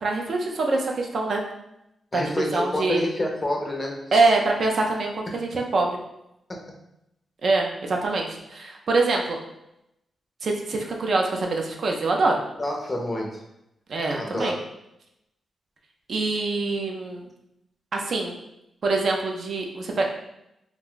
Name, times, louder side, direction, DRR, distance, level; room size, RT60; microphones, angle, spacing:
voice 1, 0.0-1.4 2.1-3.1 4.1-6.0 7.4-9.4 10.4-12.4 13.9-14.5 16.1-17.3 17.9-18.4 18.8-20.1, right 3 dB, 50° right, 1 dB, 0.4 m, -24 dB
voice 2, 2.1-4.0 12.6-13.4 14.2-14.5, left 1 dB, 20° left, 0 dB, 0.5 m, -28 dB
2.4 x 2.2 x 3.6 m, 0.84 s
wide cardioid pair, 165°, 0 cm